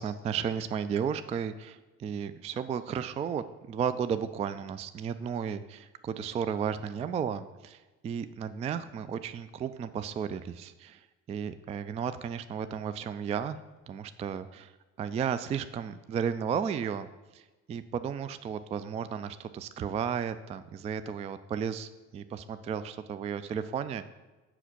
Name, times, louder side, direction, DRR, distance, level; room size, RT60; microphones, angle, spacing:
voice 1, 0.0-13.6 13.9-17.1 17.3-24.1, right 7 dB, 20° right, 12 dB, 0.3 m, -34 dB
7.8 x 5.7 x 6.0 m, 1.2 s
figure-of-eight pair, 55°, 39 cm